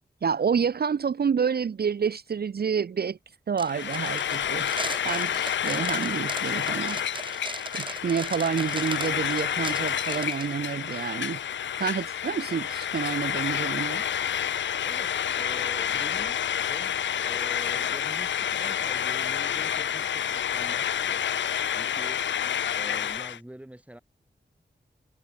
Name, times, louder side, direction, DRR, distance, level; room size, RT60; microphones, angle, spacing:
voice 1, 0.2-3.2 3.5-4.7 5.0-7.0 7.7-11.4 11.8-14.0, right 6 dB, 60° right, 0.6 m, -28 dB
sound 1, 3.6-10.5, right 3 dB, 25° right, 0.8 m, -38 dB
Frying (food), 3.7-23.4, left 9 dB, 80° left, 0.4 m, -29 dB
voice 2, 14.8-16.4 16.7-21.2 21.7-22.2 22.7-24.0, right 1 dB, 5° right, 1.5 m, -45 dB
cardioid pair, 60°, 19 cm